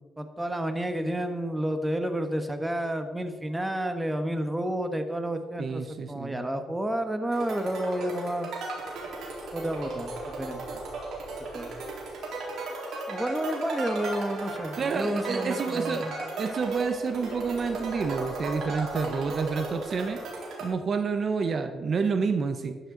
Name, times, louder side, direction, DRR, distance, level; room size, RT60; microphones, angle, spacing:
voice 1, 0.0-5.8 6.1-8.5 9.5-10.8 11.5-11.7 13.1-16.1, right 1 dB, 10° right, 7 dB, 1.4 m, -30 dB
voice 2, 5.6-6.4 14.8-20.2 20.6-22.8, right 5 dB, 45° right, 7 dB, 0.9 m, -29 dB
sound 1, 7.3-20.7, right 2 dB, 70° right, 4.0 m, -36 dB
12.0 x 11.5 x 3.9 m, 1.4 s
cardioid pair, 90°, 0 cm